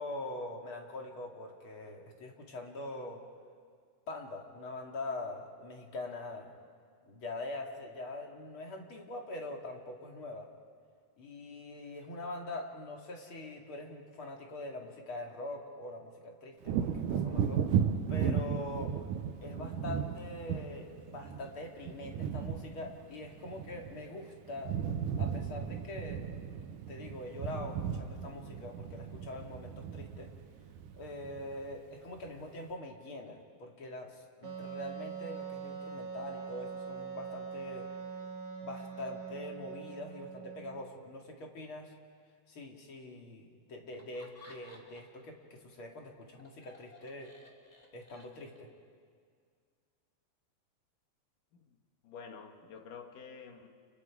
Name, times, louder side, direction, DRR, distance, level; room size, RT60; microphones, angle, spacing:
voice 1, 0.0-3.2 4.1-6.5 7.0-10.5 11.2-17.6 18.1-18.9 19.4-24.7 25.2-26.2 26.9-30.3 30.9-37.9 38.6-41.9 42.5-47.3 47.9-48.7, left 2 dB, 40° left, 1 dB, 2.6 m, -43 dB
Wind / Thunder, 16.6-24.2 24.5-31.7 32.1-32.3, right 7 dB, 70° right, 2.4 m, -35 dB
Wind instrument woodwind instrument, 34.4-40.9, right 6 dB, 45° right, 2.8 m, -43 dB
Laughter, 43.9-45.2 45.6-48.8, left 2 dB, 15° left, 1.9 m, -58 dB
voice 2, 52.0-53.7, left 5 dB, 65° left, 4 dB, 3.2 m, -49 dB
29.5 x 29.5 x 4.9 m, 2.1 s
omnidirectional pair, 4.2 m